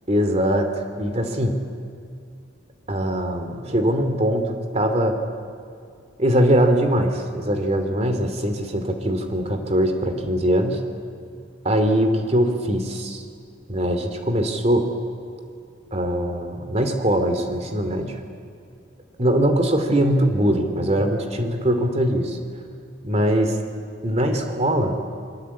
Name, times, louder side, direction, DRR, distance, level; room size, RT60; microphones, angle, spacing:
voice 1, 0.1-1.6 2.9-5.2 6.2-10.8 11.6-13.2 13.7-14.9 15.9-18.2 19.2-22.4 23.0-23.5 24.0-25.0, equal, 35° right, 6 dB, 2.8 m, -21 dB
27.5 x 22.0 x 8.5 m, 2.4 s
head